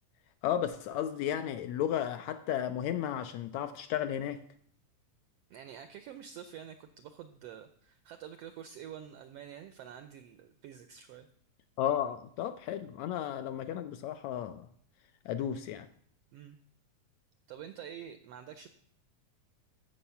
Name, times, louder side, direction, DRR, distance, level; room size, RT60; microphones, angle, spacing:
voice 1, 0.4-4.4 11.8-14.7 15.2-15.9, left 10 dB, 80° left, 9 dB, 1.6 m, -33 dB
voice 2, 5.5-11.3 16.3-16.6 17.5-18.7, right 9 dB, 90° right, 9 dB, 1.4 m, -47 dB
14.5 x 6.4 x 5.7 m, 0.63 s
omnidirectional pair, 3.5 m